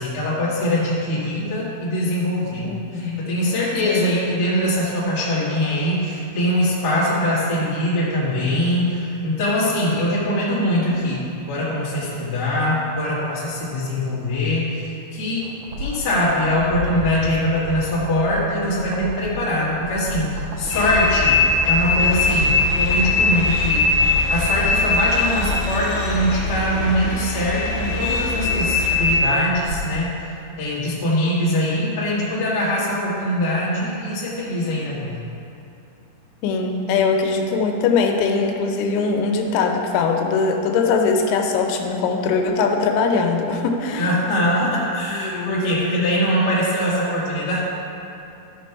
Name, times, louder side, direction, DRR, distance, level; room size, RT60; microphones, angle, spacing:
voice 1, 0.0-15.5 15.8-35.2 44.0-47.6, left 1 dB, 35° left, -8 dB, 1.7 m, -22 dB
voice 2, 2.6-3.2 3.9-4.1 36.4-44.1 45.1-46.0, left 4 dB, 85° left, 3 dB, 3.0 m, -21 dB
sound 1, 15.4-30.1 30.4-30.5, left 1 dB, 85° right, 1.9 m, -33 dB
sound 2, 20.7-29.2, left 3 dB, 70° left, 2.2 m, -21 dB
12.5 x 5.2 x 4.6 m, 2.8 s
omnidirectional pair, 5.0 m